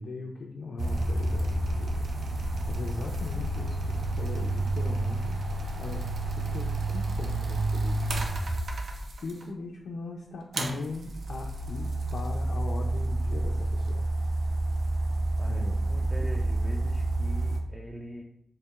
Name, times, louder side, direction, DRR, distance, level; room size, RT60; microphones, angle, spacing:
voice 1, 0.0-2.1 2.7-5.4 5.8-8.1 9.2-14.0 15.5-15.8, left 2 dB, 90° left, 0 dB, 0.4 m, -39 dB
sound 1, 0.8-9.4 10.5-17.6, right 2 dB, 70° right, 0.5 m, -29 dB
voice 2, 15.4-18.2, equal, 5° right, -1 dB, 0.3 m, -42 dB
4.4 x 3.0 x 2.4 m, 0.76 s
wide cardioid pair, 165°, 0 cm